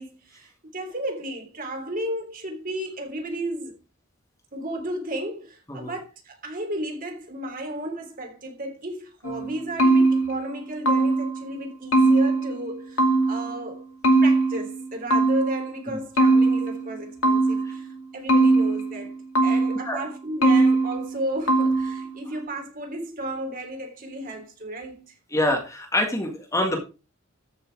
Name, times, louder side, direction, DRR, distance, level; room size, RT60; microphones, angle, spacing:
voice 1, 0.0-3.7 4.5-13.9 14.2-19.1 19.4-25.1, right 1 dB, 40° right, 3.4 m, -33 dB
sound 1, 9.2-11.4 11.9-13.6 14.0-15.7 16.2-17.8 18.3-19.9 20.4-21.2 21.5-22.1, right 2 dB, 85° left, 2.4 m, -20 dB
voice 2, 25.3-26.8, left 1 dB, 15° left, 1.9 m, -26 dB
14.0 x 6.3 x 4.8 m
head